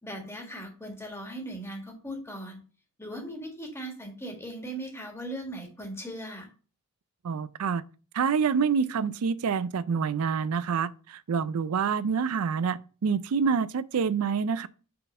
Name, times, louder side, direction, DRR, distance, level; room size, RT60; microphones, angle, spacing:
voice 1, 0.0-2.6 3.0-6.5, right 1 dB, 10° left, 1.6 m, -38 dB
voice 2, 7.2-7.8 8.1-14.7, right 6 dB, 75° right, 0.4 m, -27 dB
5.6 x 4.2 x 5.3 m
head